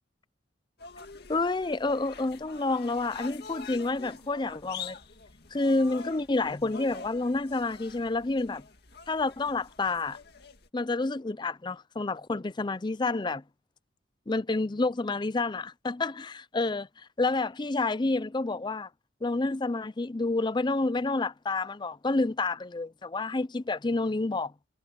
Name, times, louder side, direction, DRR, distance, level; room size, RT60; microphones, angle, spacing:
sound 1, 0.8-10.7, left 5 dB, 55° left, 2.2 m, -46 dB
voice 1, 1.3-5.0 5.5-8.6 9.1-10.2 10.7-13.4 14.3-16.9 17.2-18.9 19.2-24.5, left 3 dB, 25° left, 0.5 m, -29 dB
head